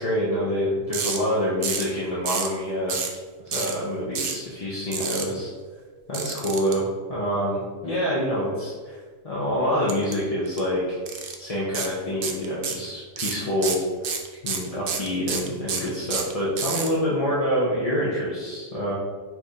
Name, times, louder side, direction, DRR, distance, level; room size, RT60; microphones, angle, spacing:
voice 1, 0.0-3.0 3.5-5.5 6.1-6.8 7.1-9.0 9.2-11.0 11.4-13.8 14.4-18.9, equal, 35° left, -7 dB, 0.6 m, -26 dB
sound 1, 0.9-1.2 1.6-1.9 2.3-2.5 2.9-3.2 3.5-3.7 4.1-4.4 4.9-5.2 6.1-6.7 9.9-10.1 10.5-10.6 11.1-11.4 11.7-11.9 12.2-12.9 13.2-16.9, right 6 dB, 65° right, 0.5 m, -29 dB
5.9 x 3.2 x 2.7 m, 1.5 s
omnidirectional pair, 1.5 m